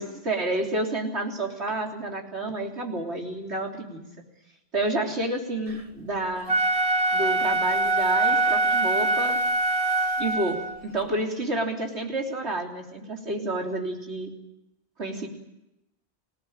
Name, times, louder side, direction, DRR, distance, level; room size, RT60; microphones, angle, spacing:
voice 1, 0.0-4.0 4.7-6.5 7.1-9.4 10.2-14.3 15.0-15.3, right 2 dB, 75° right, 1 dB, 3.9 m, -29 dB
Wind instrument woodwind instrument, 6.4-10.8, right 2 dB, 30° right, 1.7 m, -23 dB
25.5 x 18.0 x 9.0 m, 0.90 s
omnidirectional pair, 1.1 m